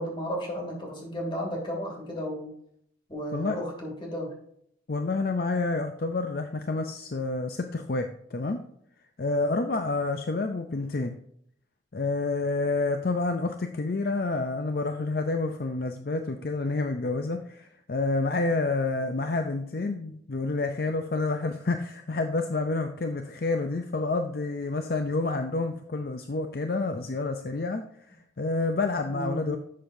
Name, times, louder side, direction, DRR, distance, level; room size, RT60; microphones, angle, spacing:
voice 1, 0.0-2.5 3.1-4.3 29.1-29.6, equal, 25° left, -1 dB, 2.7 m, -33 dB
voice 2, 4.9-8.6 9.2-11.2 11.9-29.6, left 3 dB, 55° left, 6 dB, 0.5 m, -29 dB
11.5 x 7.6 x 2.7 m, 0.70 s
head